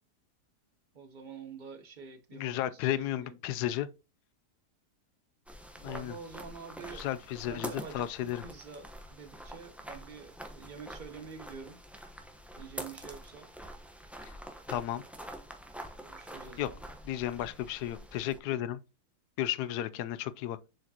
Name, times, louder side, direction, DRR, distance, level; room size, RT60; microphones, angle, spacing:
voice 1, 0.9-3.4 5.8-7.1 7.4-11.8 12.6-13.5 16.0-16.8, right 5 dB, 35° right, 0.8 m, -47 dB
voice 2, 2.3-3.9 5.8-6.2 6.9-8.4 14.2-14.4 14.7-15.0 16.6-16.7 17.1-18.8 19.4-20.6, left 12 dB, 80° left, 1.1 m, -33 dB
sound 1, 5.5-18.4, equal, ahead, 0.6 m, -46 dB
7.6 x 4.9 x 2.8 m
omnidirectional pair, 1.7 m